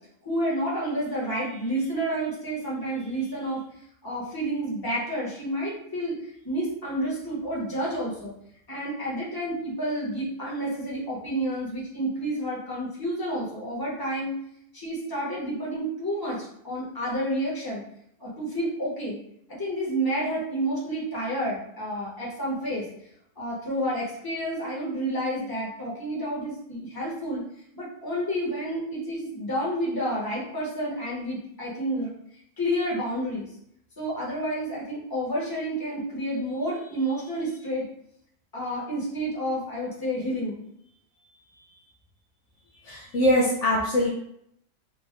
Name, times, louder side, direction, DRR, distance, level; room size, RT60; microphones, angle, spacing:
voice 1, 0.2-3.6 4.0-6.2 6.4-8.3 8.7-14.3 14.7-16.4 16.6-17.8 18.2-19.2 19.5-22.8 23.4-27.4 27.7-32.1 32.6-33.5 34.0-37.9 38.5-40.6 41.5-41.6, right 1 dB, 15° left, -6 dB, 1.1 m, -30 dB
voice 2, 42.8-44.1, left 1 dB, 65° left, -4 dB, 0.9 m, -22 dB
3.5 x 2.4 x 3.2 m, 0.72 s
omnidirectional pair, 1.5 m